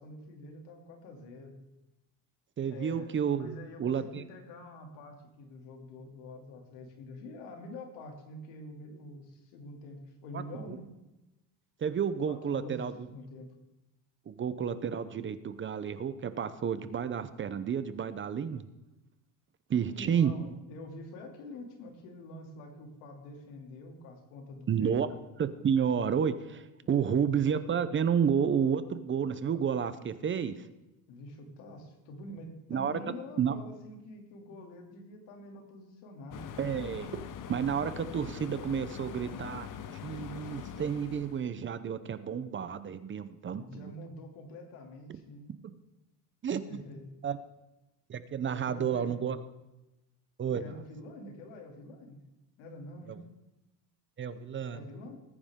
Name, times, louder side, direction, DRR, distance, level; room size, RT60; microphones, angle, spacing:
voice 1, 0.0-1.5 2.7-10.9 12.3-13.5 19.8-25.0 26.8-27.2 31.1-36.6 43.4-45.5 46.7-47.1 48.6-49.1 50.6-52.2 52.6-53.3 54.7-55.2, left 1 dB, 90° left, 3 dB, 2.9 m, -46 dB
voice 2, 2.6-4.2 10.3-10.4 10.7-10.8 11.8-12.9 14.3-18.6 19.7-20.3 24.7-25.1 25.4-30.7 32.7-33.0 33.4-33.5 36.6-37.2 37.5-39.7 40.0-43.9 46.4-46.6 47.2-47.4 48.1-49.4 50.4-50.8 54.2-54.8, right 7 dB, 30° right, 13 dB, 0.7 m, -31 dB
sound 1, 36.3-41.5, left 8 dB, 45° left, 1.0 m, -43 dB
20.0 x 9.6 x 3.7 m, 0.98 s
cardioid pair, 125°, 42 cm